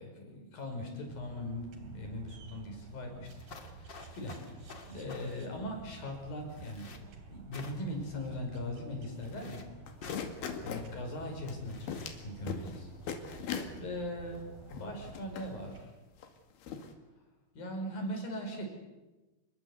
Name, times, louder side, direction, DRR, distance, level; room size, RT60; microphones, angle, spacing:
voice 1, 0.0-3.3 3.7-9.7 10.6-15.9 17.5-18.7, left 1 dB, 65° left, 2 dB, 7.4 m, -40 dB
sound 1, 1.1-15.8, right 4 dB, 65° right, 4.6 m, -52 dB
sound 2, 3.3-5.3 6.5-7.0 7.5-8.0 9.2-9.6 10.0-10.3 11.6-12.1, left 4 dB, 35° left, 2.5 m, -49 dB
sound 3, 9.9-10.9 11.5-11.6 11.9-12.2 12.5-12.8 13.1-13.7 14.3-14.4 14.7-15.5 16.2-16.3 16.6-16.9, left 7 dB, 80° left, 4.2 m, -39 dB
27.0 x 21.5 x 8.2 m, 1.1 s
omnidirectional pair, 4.4 m